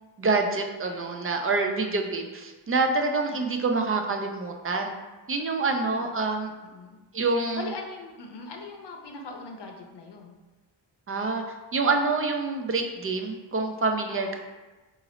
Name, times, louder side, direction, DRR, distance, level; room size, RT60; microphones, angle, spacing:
voice 1, 0.2-4.9 5.3-6.5 7.1-7.6 11.1-11.4 11.7-14.4, right 3 dB, 30° right, 3 dB, 0.4 m, -26 dB
voice 2, 3.3-3.6 5.9-6.1 6.6-7.0 7.6-10.4 14.1-14.4, left 3 dB, 65° left, 2 dB, 0.7 m, -41 dB
3.8 x 2.5 x 3.0 m, 1.2 s
cardioid pair, 65°, 45 cm